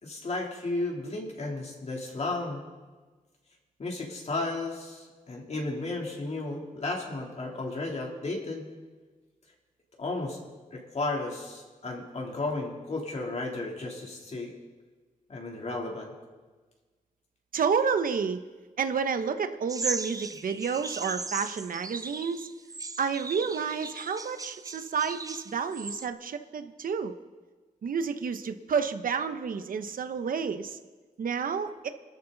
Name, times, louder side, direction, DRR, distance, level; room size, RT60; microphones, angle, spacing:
voice 1, 0.0-2.6 3.8-8.7 10.0-10.4 10.7-14.5 15.3-16.1, left 2 dB, 50° left, -1 dB, 3.2 m, -33 dB
voice 2, 17.5-18.4 18.8-22.5 23.0-27.1 27.8-30.8 31.2-31.9, right 6 dB, 75° right, 9 dB, 0.9 m, -30 dB
sound 1, 19.7-26.1, right 3 dB, 25° right, 0.6 m, -38 dB
25.5 x 13.0 x 4.0 m, 1.3 s
wide cardioid pair, 130°, 15 cm